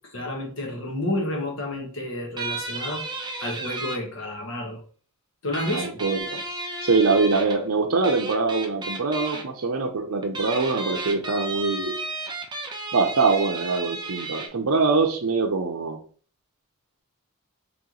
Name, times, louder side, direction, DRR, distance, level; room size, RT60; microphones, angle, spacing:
voice 1, 0.1-3.0 3.4-4.8 5.4-6.0, left 1 dB, 60° left, 0 dB, 1.3 m, -30 dB
sound 1, 2.4-4.0 5.5-7.6 8.0-9.4 10.2-14.5, right 2 dB, 20° right, 0.5 m, -33 dB
voice 2, 5.7-12.0 12.9-16.0, right 4 dB, 70° right, 3 dB, 0.6 m, -23 dB
3.4 x 3.0 x 3.8 m, 0.43 s
head